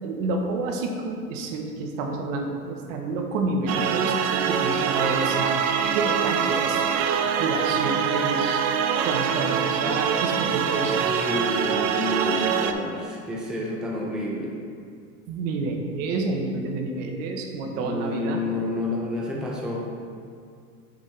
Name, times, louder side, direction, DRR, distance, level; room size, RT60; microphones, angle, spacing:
voice 1, 0.0-6.8 7.4-8.7 9.0-11.0 15.3-18.4, right 3 dB, 55° right, 2 dB, 1.1 m, -29 dB
sound 1, 3.7-12.7, right 7 dB, 35° right, 0.4 m, -24 dB
voice 2, 11.0-14.5 17.7-19.9, left 1 dB, ahead, -3 dB, 0.7 m, -29 dB
7.2 x 5.3 x 3.3 m, 2.2 s
hypercardioid pair, 105°, 46 cm